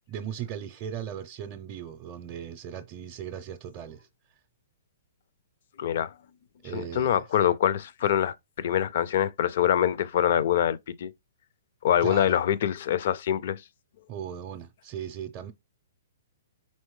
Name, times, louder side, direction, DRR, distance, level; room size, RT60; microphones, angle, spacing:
voice 1, 0.1-4.1 6.6-7.2 12.0-12.4 14.1-15.5, right 9 dB, 35° right, 0.5 m, -38 dB
voice 2, 5.8-6.1 6.7-11.1 11.8-13.6, left 10 dB, 60° left, 0.4 m, -25 dB
4.3 x 3.1 x 3.1 m
hypercardioid pair, 130°, 0 cm